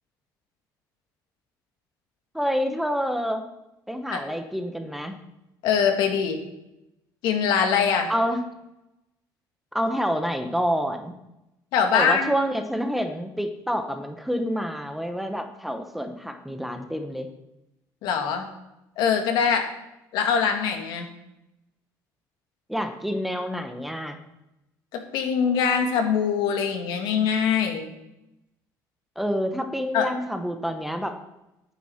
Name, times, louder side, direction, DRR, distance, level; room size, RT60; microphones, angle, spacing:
voice 1, 2.3-3.4 3.9-5.2 8.1-8.4 9.7-11.1 11.9-17.3 22.7-24.2 29.2-31.1, equal, ahead, 6 dB, 0.9 m, -28 dB
voice 2, 5.6-6.4 7.2-8.1 11.7-12.3 18.0-18.5 19.0-19.7 20.1-21.1 24.9-27.9 29.9-30.1, left 7 dB, 75° left, 4 dB, 1.9 m, -23 dB
9.3 x 9.2 x 5.6 m, 0.91 s
cardioid pair, 155°, 7 cm